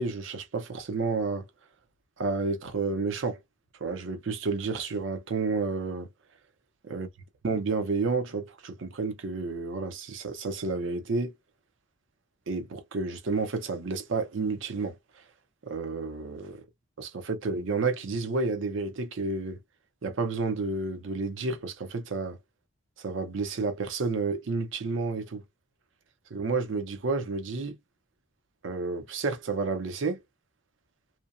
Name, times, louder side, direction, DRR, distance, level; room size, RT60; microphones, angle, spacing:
voice 1, 0.0-1.5 2.2-3.4 3.8-6.1 6.8-7.1 7.4-11.3 12.5-15.0 15.6-16.6 17.0-19.6 20.0-22.4 23.0-25.4 26.3-27.8 28.6-30.2, right 3 dB, 65° right, 0.5 m, -30 dB
2.8 x 2.0 x 2.4 m
head